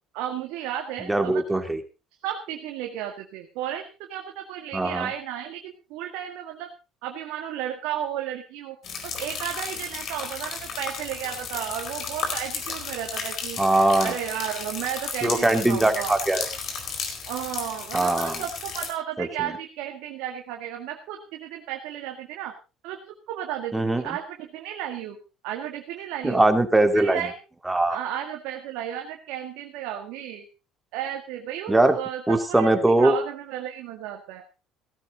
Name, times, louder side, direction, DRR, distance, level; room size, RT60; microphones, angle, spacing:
voice 1, 0.1-1.4 2.2-6.7 7.0-8.8 9.0-13.6 14.0-16.2 17.3-22.5 22.8-25.2 25.4-26.5 26.9-27.4 27.9-30.4 30.9-34.4, right 10 dB, 75° right, 3 dB, 1.9 m, -33 dB
voice 2, 1.1-1.8 4.7-5.1 13.6-14.1 15.2-16.5 17.9-18.4 19.2-19.5 23.7-24.2 26.2-27.2 27.7-28.0 31.7-32.0 32.3-33.1, right 2 dB, 10° right, 6 dB, 2.8 m, -21 dB
sound 1, 8.8-18.9, left 5 dB, 55° left, 4.4 m, -34 dB
16.5 x 13.5 x 4.0 m, 0.31 s
hypercardioid pair, 70°, 0 cm